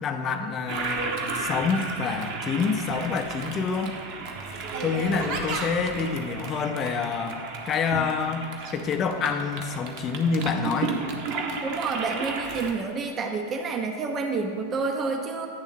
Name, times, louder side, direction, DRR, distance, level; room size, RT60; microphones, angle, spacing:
voice 1, 0.0-4.0 4.8-10.9, left 5 dB, 30° left, 7 dB, 0.5 m, -27 dB
Toilet flush, 0.7-12.7, right 4 dB, 45° right, 0.8 m, -33 dB
voice 2, 11.6-15.5, right 4 dB, 25° right, 4 dB, 0.5 m, -29 dB
9.5 x 3.5 x 5.7 m, 2.1 s
figure-of-eight pair, 90°, 0 cm